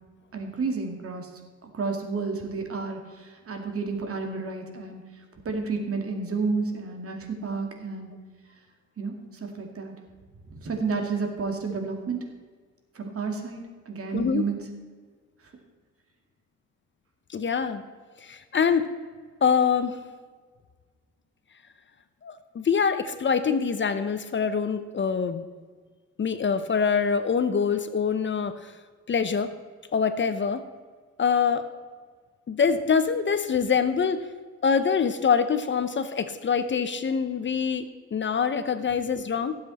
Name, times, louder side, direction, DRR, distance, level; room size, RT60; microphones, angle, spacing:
voice 1, 0.3-1.3 1.6-8.1 9.0-9.1 9.4-9.9 10.5-12.2 12.9-14.6, right 4 dB, 50° right, 3 dB, 2.5 m, -31 dB
voice 2, 14.1-14.4 17.3-17.8 18.2-18.9 19.4-20.0 22.2-25.4 26.2-28.7 29.1-29.5 29.9-30.6 31.2-31.7 32.5-34.3 34.6-39.6, left 6 dB, 40° left, 10 dB, 0.9 m, -25 dB
17.5 x 7.8 x 4.3 m, 1.5 s
cardioid pair, 90°, 30 cm